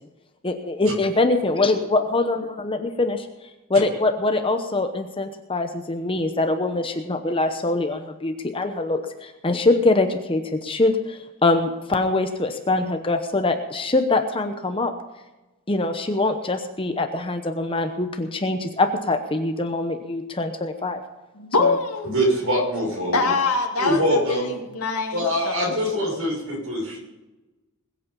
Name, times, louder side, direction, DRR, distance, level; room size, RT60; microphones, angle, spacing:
voice 1, 0.4-3.3 3.7-14.9 15.7-21.0 21.6-21.8, left 2 dB, 25° left, 6 dB, 0.9 m, -23 dB
voice 2, 21.4-22.1 23.1-26.3, left 3 dB, 85° left, 1 dB, 2.1 m, -25 dB
voice 3, 22.0-23.3 23.8-24.5 25.1-27.0, equal, 65° right, -1 dB, 6.4 m, -23 dB
21.0 x 8.5 x 5.4 m, 1.1 s
head